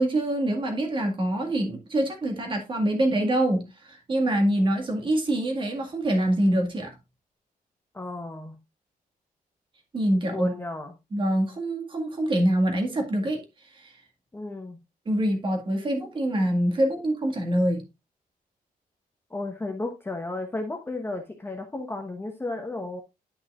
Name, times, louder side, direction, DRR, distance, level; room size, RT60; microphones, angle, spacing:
voice 1, 0.0-7.0 9.9-10.5 11.1-13.4 13.7-13.9 15.1-17.8, right 1 dB, 30° right, 1.9 m, -25 dB
voice 2, 7.9-8.6 10.3-10.9 14.3-14.8 19.3-23.0, left 2 dB, 15° left, 0.9 m, -33 dB
10.5 x 5.7 x 2.4 m
wide cardioid pair, 175°, 16 cm